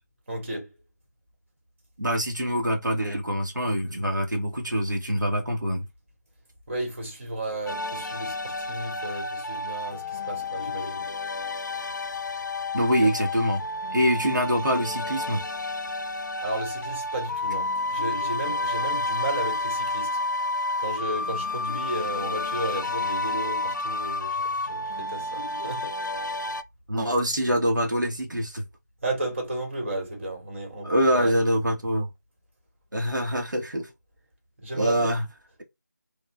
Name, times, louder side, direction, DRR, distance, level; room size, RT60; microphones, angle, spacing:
voice 1, 0.3-0.7 6.7-11.0 13.0-13.1 16.4-20.2 20.8-25.9 29.0-31.4 34.6-35.1, right 1 dB, 40° right, 1.7 m, -33 dB
voice 2, 2.0-5.8 12.7-13.6 13.9-15.4 26.9-28.6 30.8-32.1 32.9-33.9 34.7-35.2, equal, 85° right, 1.1 m, -25 dB
sound 1, 7.7-26.6, left 2 dB, 80° left, 0.5 m, -30 dB
4.2 x 2.4 x 2.3 m
figure-of-eight pair, 165°, 10 cm